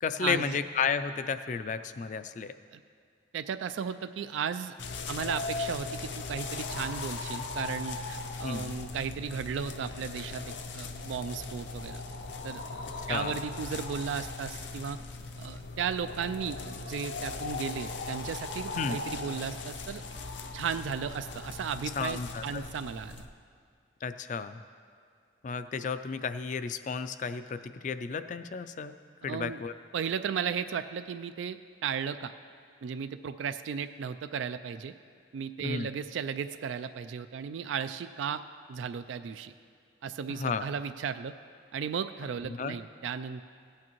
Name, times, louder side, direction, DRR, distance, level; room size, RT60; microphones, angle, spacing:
voice 1, 0.0-2.5 8.4-8.7 13.1-13.4 18.7-19.0 22.0-22.6 24.0-24.6 25.4-29.0 29.2-29.7 35.6-35.9 40.3-40.6 42.5-42.8, left 5 dB, 40° left, 11 dB, 0.3 m, -33 dB
voice 2, 3.3-4.7 5.1-12.0 12.4-12.6 13.1-15.0 15.4-20.0 20.5-23.2 29.2-29.6 29.9-32.3 32.8-34.9 35.3-38.4 38.7-39.5 40.0-41.3 41.7-43.4, right 7 dB, 85° right, 10 dB, 0.3 m, -35 dB
sound 1, 4.8-23.3, left 3 dB, 75° left, 0.7 m, -39 dB
16.5 x 8.6 x 3.0 m, 2.2 s
head